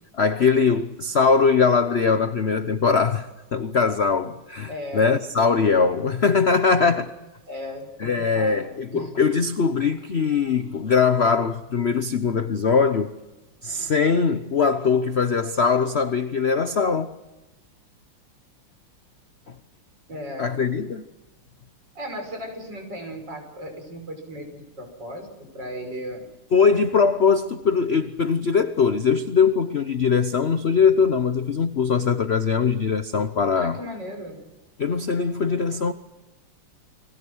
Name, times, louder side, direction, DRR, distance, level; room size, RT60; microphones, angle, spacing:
voice 1, 0.1-7.1 8.0-13.1 13.6-17.2 20.4-21.1 26.5-33.8 34.8-35.9, left 5 dB, 55° left, 0.7 m, -21 dB
voice 2, 4.7-5.3 7.5-9.1 20.1-20.6 21.9-26.3 33.6-34.4, equal, 50° right, 6.6 m, -36 dB
30.0 x 23.0 x 6.3 m
omnidirectional pair, 2.4 m